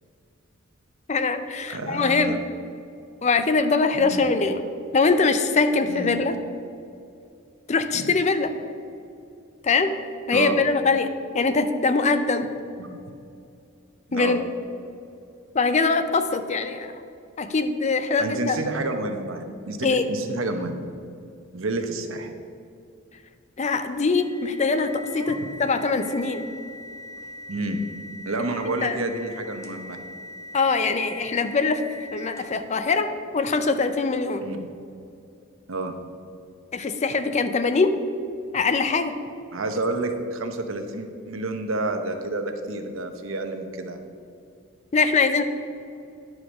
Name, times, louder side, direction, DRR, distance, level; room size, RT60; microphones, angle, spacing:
voice 1, 1.1-2.4 3.2-4.6 4.9-6.3 7.7-8.5 9.6-10.0 10.3-11.1 11.3-12.5 14.1-14.4 15.5-16.9 17.4-18.6 19.8-20.0 23.6-26.5 28.8-29.0 30.5-31.8 32.1-34.5 36.7-38.0 38.5-39.1 44.9-45.4, left 4 dB, 35° left, 9 dB, 0.5 m, -22 dB
voice 2, 1.7-2.4 4.0-4.3 5.9-6.1 7.9-8.1 10.3-10.6 12.8-13.0 14.1-14.4 18.2-20.8 21.5-22.3 25.2-25.4 27.5-27.8 28.3-30.0 34.4-34.7 35.7-36.0 39.5-44.1, right 2 dB, 75° right, 6 dB, 0.9 m, -29 dB
sound 1, 24.1-32.7, left 2 dB, 15° left, 0.9 m, -41 dB
10.0 x 4.9 x 6.2 m, 2.5 s
head